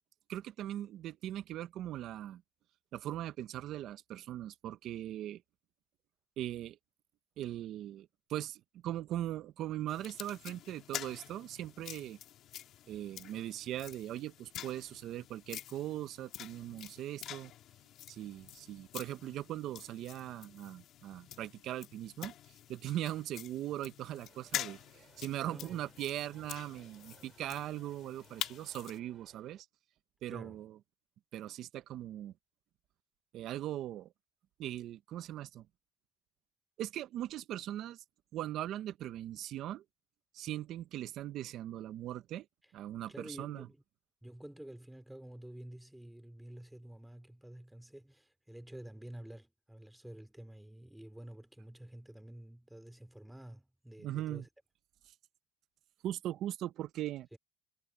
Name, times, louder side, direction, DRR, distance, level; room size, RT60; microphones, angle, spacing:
voice 1, 0.3-2.4 2.9-5.4 6.4-6.8 7.4-12.2 12.9-17.5 18.1-22.3 22.7-24.8 25.2-29.7 30.2-30.7 31.3-32.3 33.3-34.1 34.6-35.7 36.8-38.0 38.3-39.8 40.3-42.5 42.7-43.7 54.0-54.4 56.0-57.3, right 13 dB, 70° right, 0.9 m, -40 dB
sound 1, 9.9-29.0, left 11 dB, 65° left, 2.3 m, -47 dB
sound 2, 24.2-29.6, right 8 dB, 50° right, 5.9 m, -63 dB
voice 2, 25.4-25.8 30.3-30.7 43.1-43.8 44.2-54.5 57.3-57.4, right 1 dB, 5° right, 2.8 m, -50 dB
cardioid pair, 95°, 0 cm